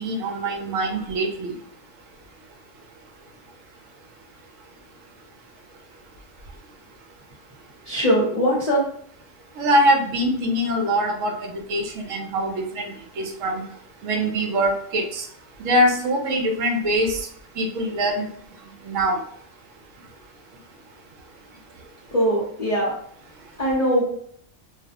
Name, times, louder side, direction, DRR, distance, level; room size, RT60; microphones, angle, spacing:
voice 1, 0.0-1.5 9.6-13.6 14.0-15.2 15.6-17.2 17.6-18.3 18.9-19.2, equal, 75° right, 2 dB, 0.9 m, -23 dB
voice 2, 7.9-8.8 22.1-22.9 23.6-24.0, equal, 40° left, -8 dB, 0.6 m, -21 dB
2.4 x 2.0 x 2.7 m, 0.65 s
omnidirectional pair, 1.4 m